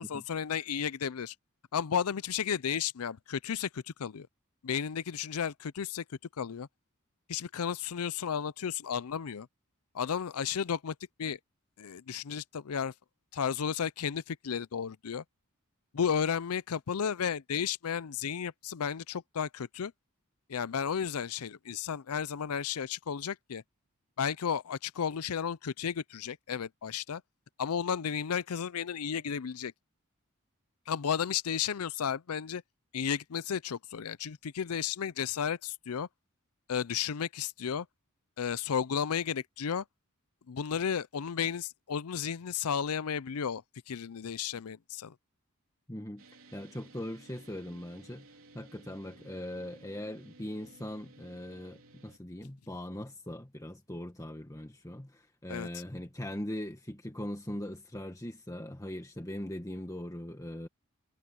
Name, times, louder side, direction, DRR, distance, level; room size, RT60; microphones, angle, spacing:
voice 1, 0.0-1.3 1.7-4.3 4.6-6.0 6.4-6.7 7.3-9.5 9.9-11.4 11.8-12.9 13.3-15.2 15.9-19.9 20.5-23.6 24.2-27.2 27.6-29.7 30.9-32.6 32.9-36.1 36.7-37.9 38.4-39.8 40.5-45.1 55.5-55.7, left 7 dB, 85° left, 0.5 m, -33 dB
voice 2, 45.9-46.2 46.5-48.3 48.5-60.7, left 1 dB, 15° left, 1.6 m, -40 dB
sound 1, 46.2-52.2, right 2 dB, 65° right, 4.2 m, -57 dB
head